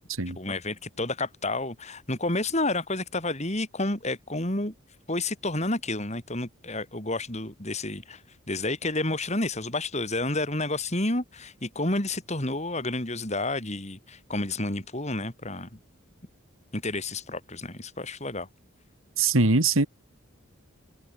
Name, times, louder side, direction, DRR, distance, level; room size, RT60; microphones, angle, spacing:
voice 1, 0.3-4.7 5.1-8.2 8.5-15.7 16.7-18.5, left 2 dB, 35° left, 4.4 m, -30 dB
voice 2, 19.2-19.9, right 3 dB, 75° right, 2.5 m, -21 dB
head